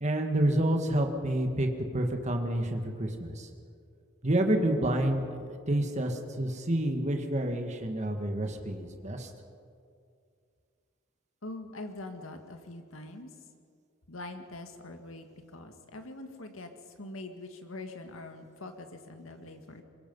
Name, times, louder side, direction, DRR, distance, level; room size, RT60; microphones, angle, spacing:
voice 1, 0.0-3.5 4.2-9.3, right 1 dB, 35° right, 4 dB, 1.8 m, -29 dB
voice 2, 11.4-13.3 14.1-15.3 15.5-16.7 17.0-19.8, left 2 dB, 75° left, 6 dB, 1.8 m, -43 dB
24.0 x 21.5 x 5.5 m, 2.3 s
head